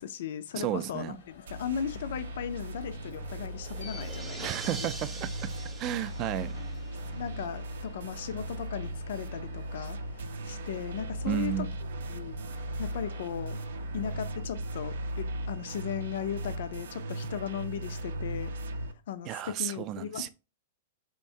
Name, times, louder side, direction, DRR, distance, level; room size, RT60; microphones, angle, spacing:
voice 1, 0.0-4.9 7.1-10.0 10.4-11.7 12.1-12.4 12.8-13.6 13.9-20.3, left 9 dB, 65° left, 0.4 m, -37 dB
voice 2, 0.6-1.2 4.4-5.5 5.8-6.5 11.3-11.7 19.2-20.3, right 12 dB, 30° right, 0.3 m, -33 dB
Alarm, 0.9-14.8, left 4 dB, 90° left, 1.0 m, -54 dB
sound 1, 1.5-18.9, right 1 dB, 90° right, 0.5 m, -37 dB
sound 2, 3.0-7.6, right 4 dB, 10° right, 0.7 m, -45 dB
4.4 x 3.1 x 2.7 m
hypercardioid pair, 155°, 0 cm